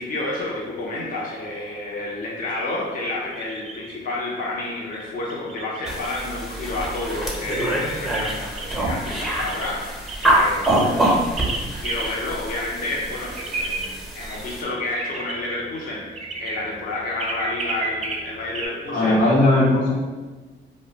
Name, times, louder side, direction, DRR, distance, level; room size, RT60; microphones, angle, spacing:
voice 1, 0.0-19.2, left 2 dB, 45° left, -4 dB, 0.6 m, -30 dB
sound 1, 3.3-3.9 4.9-6.2 7.2-8.8 9.5-9.7 10.1-10.3 10.6-10.8 11.4-11.6 11.8-12.1 12.5-12.6 12.8-12.9 13.1-18.7, right 3 dB, 35° right, 0.4 m, -32 dB
sound 2, 5.9-14.6, right 1 dB, ahead, 0.7 m, -25 dB
voice 2, 18.9-19.9, left 2 dB, 80° left, -5 dB, 0.9 m, -18 dB
2.4 x 2.1 x 3.9 m, 1.3 s
cardioid pair, 90°, 20 cm